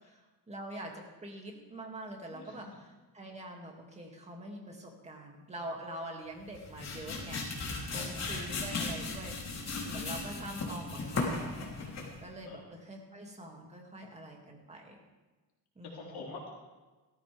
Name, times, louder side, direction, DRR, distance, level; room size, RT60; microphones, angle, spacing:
voice 1, 0.5-7.5 7.9-11.6 12.2-15.0 15.8-16.2, right 1 dB, 20° right, 0 dB, 2.4 m, -45 dB
voice 2, 2.3-2.7 7.9-8.4 8.7-8.8 12.5-12.6 15.9-16.5, left 3 dB, 90° left, -3 dB, 2.9 m, -47 dB
sound 1, 6.4-12.2, left 3 dB, 45° left, 3.3 m, -36 dB
17.0 x 14.0 x 3.5 m, 1.2 s
cardioid pair, 140°, 37 cm